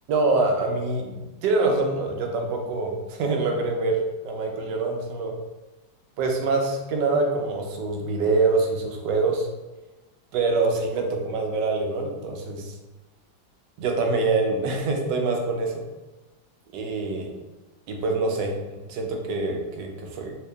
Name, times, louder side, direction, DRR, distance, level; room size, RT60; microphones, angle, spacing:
voice 1, 0.1-5.3 6.2-9.5 10.3-12.7 13.8-15.8 16.7-17.3 17.9-18.6 18.9-20.3, right 3 dB, 75° right, 2 dB, 1.2 m, -25 dB
3.1 x 2.8 x 3.3 m, 1.1 s
omnidirectional pair, 2.0 m